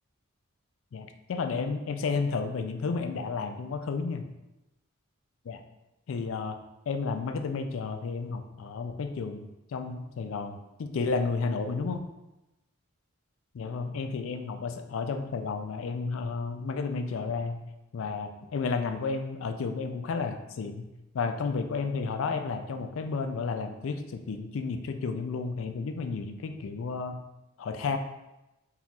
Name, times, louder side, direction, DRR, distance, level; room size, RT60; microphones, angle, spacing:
voice 1, 0.9-4.2 5.5-5.6 6.1-6.6 6.9-12.1 13.5-17.6 17.9-20.9 21.1-27.2 27.6-28.0, left 4 dB, 65° left, 7 dB, 0.4 m, -32 dB
4.3 x 3.7 x 2.3 m, 0.95 s
head